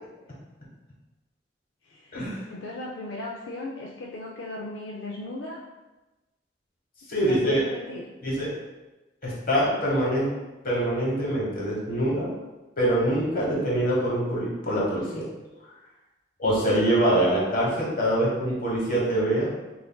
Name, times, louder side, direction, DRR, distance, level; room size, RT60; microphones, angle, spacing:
voice 1, 1.9-5.6 7.1-8.0, left 2 dB, 75° left, -2 dB, 0.4 m, -37 dB
voice 2, 7.1-7.6 8.2-8.5 9.2-10.3 10.6-12.3 12.8-15.2 16.4-19.5, right 1 dB, 50° left, -5 dB, 1.1 m, -24 dB
5.7 x 2.5 x 2.2 m, 1.1 s
head